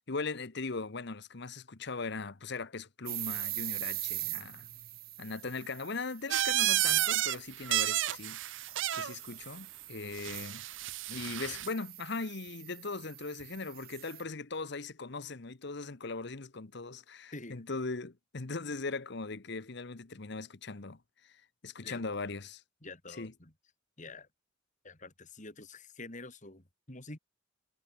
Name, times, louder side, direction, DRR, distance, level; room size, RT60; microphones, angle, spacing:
voice 1, 0.0-4.7 5.2-8.4 8.9-10.6 11.1-22.6 23.2-23.3, left 3 dB, 60° left, 1.1 m, -39 dB
sound 1, 3.1-14.2, right 17 dB, 50° right, 1.0 m, -43 dB
sound 2, 6.3-7.4 7.6-9.1 10.2-11.7, right 14 dB, 70° right, 0.6 m, -31 dB
voice 2, 17.3-17.6 21.8-22.0 22.8-23.5 24.0-24.3 24.8-27.2, left 2 dB, 40° left, 3.7 m, -47 dB
head